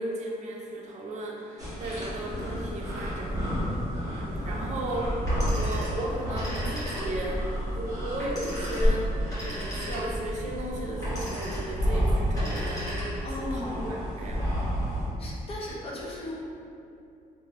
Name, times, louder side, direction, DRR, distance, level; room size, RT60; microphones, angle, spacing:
voice 1, 0.0-5.2 5.5-7.4 7.7-9.1 9.4-14.5, right 1 dB, 50° right, -1 dB, 0.5 m, -35 dB
sound 1, 1.6-15.1, equal, 20° right, 1.1 m, -30 dB
Telephone, 5.2-7.4 8.2-10.3 11.0-11.8 12.2-13.4, equal, 20° left, 1.1 m, -38 dB
voice 2, 13.2-13.8 15.2-16.3, left 2 dB, 40° left, -4 dB, 0.6 m, -36 dB
2.8 x 2.5 x 2.8 m, 2.7 s
cardioid pair, 145°, 16 cm